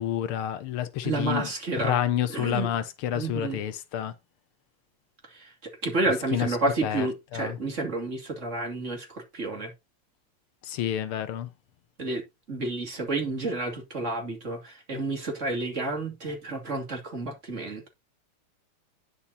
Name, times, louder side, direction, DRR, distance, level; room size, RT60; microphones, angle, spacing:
voice 1, 0.0-4.1 6.3-6.6 6.8-7.1 7.3-7.6 10.6-11.5, left 11 dB, 75° left, 1.7 m, -29 dB
voice 2, 1.0-2.0 2.3-2.7 3.1-3.6 5.2-9.7 12.0-12.2 12.5-17.9, right 2 dB, 35° right, 2.8 m, -30 dB
10.0 x 5.7 x 4.2 m
omnidirectional pair, 2.4 m